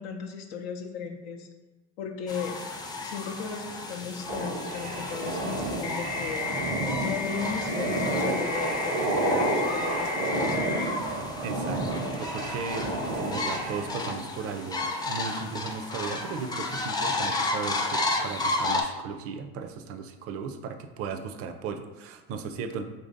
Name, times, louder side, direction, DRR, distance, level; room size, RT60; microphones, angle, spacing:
voice 1, 0.0-1.5 2.0-2.6 3.0-6.5 7.0-10.8, left 6 dB, 85° left, 2 dB, 0.5 m, -36 dB
sound 1, 2.3-18.8, left 2 dB, 15° left, 0.4 m, -33 dB
sound 2, 4.3-14.2, right 2 dB, 85° right, 0.8 m, -30 dB
sound 3, 5.8-10.8, left 4 dB, 55° left, 0.8 m, -34 dB
voice 2, 11.4-22.9, right 5 dB, 50° right, 7 dB, 0.4 m, -36 dB
3.1 x 2.6 x 3.8 m, 1.2 s
supercardioid pair, 95°, 30 cm